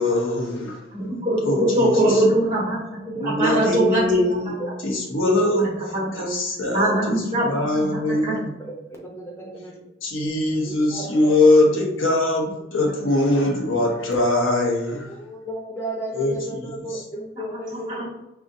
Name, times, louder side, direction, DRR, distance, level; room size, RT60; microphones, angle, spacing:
voice 1, 0.0-0.8 1.4-2.2 3.1-8.5 10.0-15.1 16.1-17.0, left 2 dB, 85° left, -2 dB, 1.3 m, -22 dB
voice 2, 0.9-4.0 5.9-6.2 6.7-8.4 17.9-18.0, right 1 dB, 20° right, -5 dB, 1.6 m, -22 dB
voice 3, 1.8-2.3 3.1-3.6 8.7-9.7 10.6-11.3 13.0-13.1 15.1-18.0, right 1 dB, 15° left, -2 dB, 0.7 m, -34 dB
5.1 x 3.4 x 2.7 m, 0.89 s
head